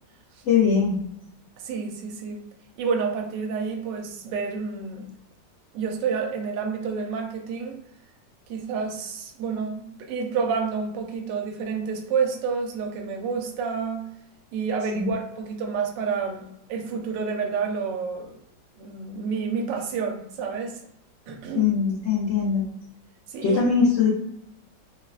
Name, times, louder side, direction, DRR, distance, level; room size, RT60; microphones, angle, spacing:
voice 1, 0.4-1.1 14.9-15.1 21.5-22.7 23.4-24.1, left 6 dB, 70° left, -5 dB, 0.7 m, -21 dB
voice 2, 1.6-2.4 2.8-5.1 5.7-7.8 8.5-14.1 14.5-18.4 18.8-20.8 21.3-21.7 23.3-23.6, right 5 dB, 80° right, 3 dB, 1.2 m, -29 dB
3.5 x 2.1 x 2.3 m, 0.76 s
omnidirectional pair, 2.0 m